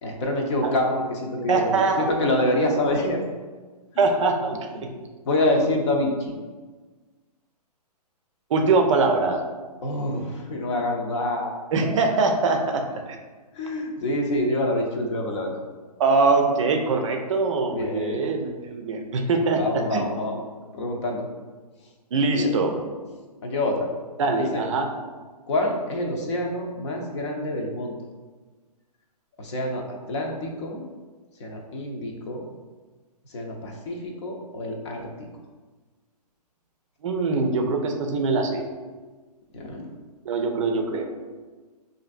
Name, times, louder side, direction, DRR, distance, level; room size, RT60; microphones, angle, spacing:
voice 1, 0.0-3.2 5.3-6.3 9.8-11.6 13.5-15.5 17.7-18.2 19.5-20.4 20.7-21.3 22.3-22.5 23.4-23.9 24.3-24.6 25.5-27.9 29.4-30.8 31.4-32.5 33.3-35.1 39.5-39.9, left 1 dB, 45° left, 1 dB, 0.7 m, -26 dB
voice 2, 1.5-2.1 4.0-4.9 8.5-9.4 11.7-12.8 16.0-20.0 22.1-22.8 24.2-24.9 37.0-38.7 40.2-41.1, right 3 dB, 50° right, 4 dB, 0.5 m, -23 dB
5.1 x 2.6 x 2.5 m, 1.3 s
hypercardioid pair, 140°, 21 cm